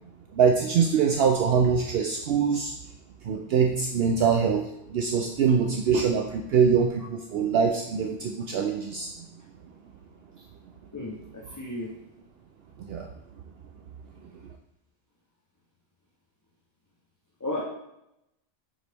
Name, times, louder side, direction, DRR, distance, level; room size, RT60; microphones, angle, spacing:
voice 1, 0.3-2.7 3.2-9.1 12.8-13.1, right 6 dB, 65° right, 2 dB, 0.7 m, -23 dB
voice 2, 10.9-11.9 17.4-17.6, left 1 dB, 20° left, -4 dB, 0.7 m, -33 dB
7.6 x 3.9 x 3.4 m, 0.85 s
omnidirectional pair, 1.2 m